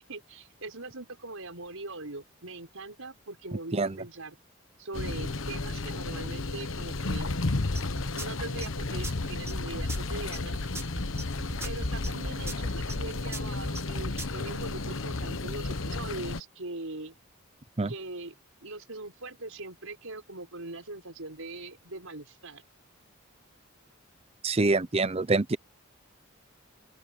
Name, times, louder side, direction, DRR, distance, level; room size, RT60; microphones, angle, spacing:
voice 1, 0.1-4.4 4.8-7.4 8.1-10.6 11.6-17.2 17.9-18.3 18.6-22.6, right 2 dB, 85° right, 5.4 m, -41 dB
sound 1, 4.9-16.4, left 2 dB, 70° left, 1.2 m, -33 dB
sound 2, 7.8-14.4, right 1 dB, 15° right, 1.7 m, -38 dB
voice 2, 24.4-25.6, right 3 dB, 30° right, 0.6 m, -25 dB
open air
head